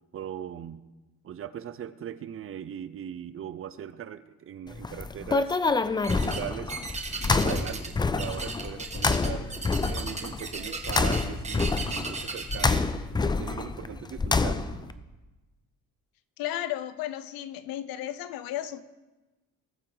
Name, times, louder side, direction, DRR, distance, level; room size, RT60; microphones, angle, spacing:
voice 1, 0.1-0.8 1.2-5.6 6.0-6.7 7.3-9.5 9.8-12.9 13.2-14.6, right 10 dB, 40° right, 14 dB, 0.6 m, -39 dB
sound 1, 4.7-14.9, left 4 dB, 15° left, 0.4 m, -28 dB
sound 2, 6.0-6.4 6.7-7.9 8.2-12.8, right 4 dB, 20° right, 1.2 m, -36 dB
voice 2, 16.4-18.8, left 12 dB, 80° left, 14 dB, 0.8 m, -34 dB
19.5 x 7.4 x 3.9 m, 1.1 s
cardioid pair, 125°, 35 cm